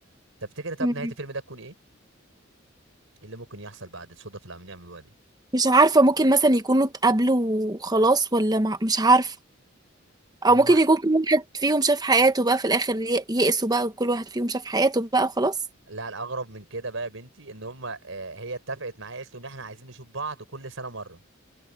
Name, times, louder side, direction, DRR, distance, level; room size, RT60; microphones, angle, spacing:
voice 1, 0.4-1.7 3.2-5.1 10.5-10.8 15.9-21.2, right 3 dB, 75° right, 4.7 m, -36 dB
voice 2, 5.5-9.3 10.4-15.5, right 2 dB, 20° right, 1.2 m, -21 dB
head